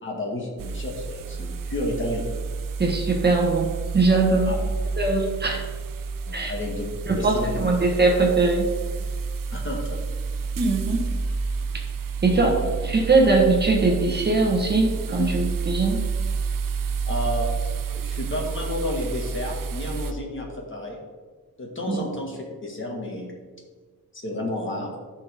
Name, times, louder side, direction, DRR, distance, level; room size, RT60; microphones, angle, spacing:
voice 1, 0.0-2.3 4.5-4.6 6.3-6.9 7.2-7.6 9.5-10.0 17.1-17.5 17.9-21.0 21.6-23.3 24.1-24.9, left 1 dB, 35° left, -1 dB, 2.0 m, -31 dB
sound 1, 0.6-20.1, right 5 dB, 65° right, 0.7 m, -29 dB
voice 2, 2.8-4.6 5.0-5.7 6.3-6.5 7.1-8.7 10.6-11.1 12.2-16.1 21.9-22.0, right 3 dB, 30° right, 1 dB, 1.3 m, -21 dB
14.5 x 5.9 x 3.6 m, 1.5 s
wide cardioid pair, 145°, 35 cm